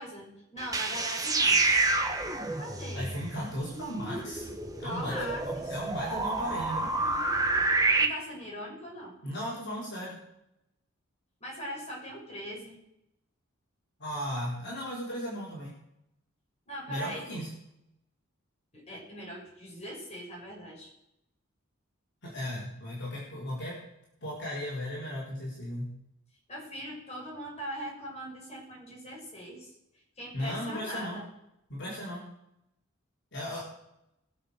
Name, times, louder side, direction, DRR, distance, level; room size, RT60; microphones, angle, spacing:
voice 1, 0.0-1.6 2.6-3.1 4.8-5.7 8.0-9.2 11.4-12.8 16.7-17.3 18.7-20.9 26.5-29.7 30.2-31.3, equal, 30° left, -2 dB, 6.5 m, -40 dB
sound 1, 0.6-8.1, right 3 dB, 15° right, 1.3 m, -29 dB
voice 2, 2.9-4.5 4.8-6.9 9.2-10.2 14.0-15.8 16.9-17.5 22.2-23.8 24.2-25.9 30.3-31.2 31.7-32.3 33.3-33.6, equal, 60° left, -5 dB, 4.2 m, -36 dB
21.5 x 7.3 x 6.7 m, 0.81 s
head